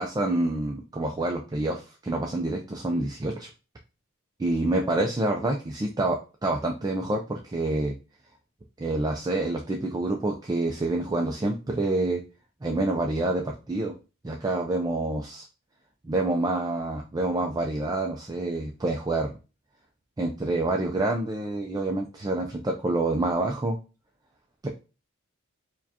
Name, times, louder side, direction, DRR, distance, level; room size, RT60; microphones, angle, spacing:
voice 1, 0.0-3.5 4.4-7.9 8.8-12.2 12.6-13.9 14.2-15.5 16.0-19.3 20.2-23.8 24.6-24.7, right 2 dB, 20° right, 1 dB, 0.4 m, -27 dB
4.7 x 2.2 x 2.8 m, 0.31 s
head